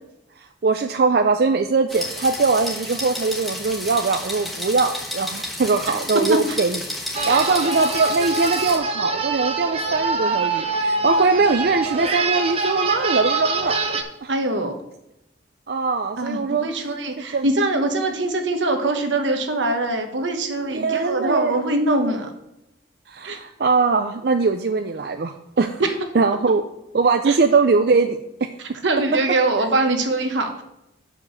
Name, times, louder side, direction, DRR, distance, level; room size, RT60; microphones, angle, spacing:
voice 1, 0.4-6.8 7.3-13.8 14.2-14.3 15.7-16.7 17.3-17.5 20.7-21.6 23.1-25.8 26.1-26.7 26.9-28.5, right 4 dB, 55° right, 6 dB, 0.4 m, -21 dB
sound 1, 1.9-8.8, left 1 dB, ahead, 1.3 m, -31 dB
sound 2, 7.1-14.0, right 3 dB, 35° right, 0.7 m, -24 dB
voice 2, 14.3-14.8 16.2-22.3 23.2-23.4 27.3-27.4 28.8-30.6, right 2 dB, 85° right, 5 dB, 1.2 m, -23 dB
6.7 x 5.1 x 6.8 m, 0.87 s
head